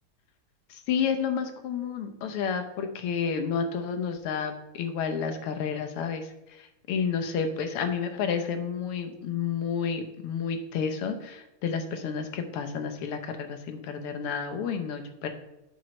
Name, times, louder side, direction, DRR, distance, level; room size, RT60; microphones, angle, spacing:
voice 1, 0.7-15.3, left 6 dB, 85° left, 6 dB, 1.8 m, -30 dB
9.1 x 3.1 x 6.3 m, 0.91 s
omnidirectional pair, 2.4 m